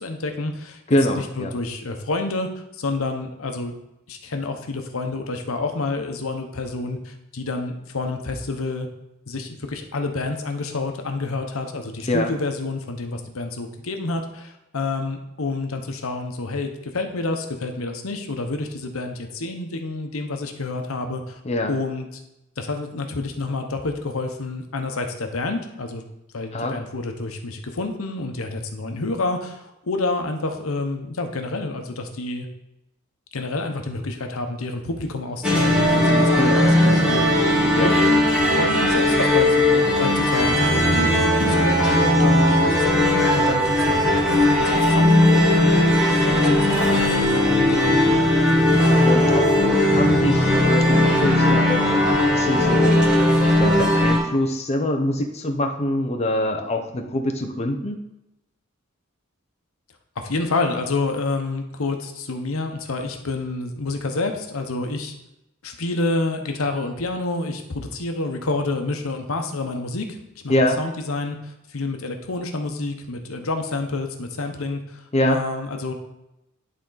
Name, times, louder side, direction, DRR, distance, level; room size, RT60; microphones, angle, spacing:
voice 1, 0.0-0.8 1.1-3.7 4.1-8.9 9.3-21.4 21.7-22.1 22.6-26.0 26.3-32.5 33.3-45.9 46.2-48.0 60.2-65.1 65.6-70.1 70.4-75.9, left 2 dB, 85° left, 5 dB, 0.9 m, -28 dB
voice 2, 0.9-1.5 12.1-12.3 21.4-21.7 26.5-26.7 36.4-36.6 37.7-37.9 49.0-49.5 49.9-51.8 52.3-53.0 53.6-58.0 70.5-70.8 75.1-75.4, left 1 dB, 30° left, 4 dB, 0.7 m, -24 dB
sound 1, 35.4-54.2, left 1 dB, 5° right, 1.6 m, -18 dB
11.0 x 3.8 x 3.9 m, 0.89 s
head